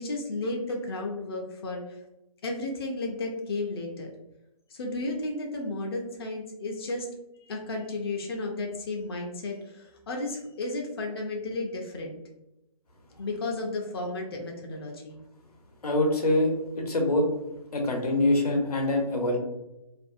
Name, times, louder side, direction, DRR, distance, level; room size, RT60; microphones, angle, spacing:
voice 1, 0.0-2.0 2.4-4.1 4.7-7.1 7.5-12.2 13.2-15.2, left 2 dB, 40° left, 0 dB, 0.4 m, -33 dB
voice 2, 15.8-17.2 17.7-19.4, left 1 dB, 85° left, 1 dB, 0.8 m, -24 dB
2.5 x 2.3 x 2.4 m, 0.91 s
hypercardioid pair, 150°, 19 cm